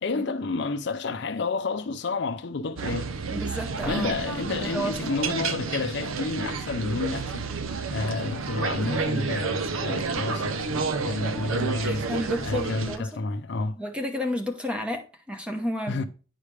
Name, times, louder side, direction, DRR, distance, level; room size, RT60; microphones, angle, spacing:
voice 1, 0.0-3.1 3.9-7.4 7.9-12.1 12.4-13.8 15.9-16.0, left 3 dB, 55° left, 0.5 m, -30 dB
sound 1, 2.8-13.0, right 4 dB, 80° right, 0.7 m, -30 dB
voice 2, 3.3-4.2 4.4-5.0 11.8-13.1 13.8-16.1, equal, 5° right, 0.8 m, -31 dB
9.6 x 4.9 x 3.2 m
head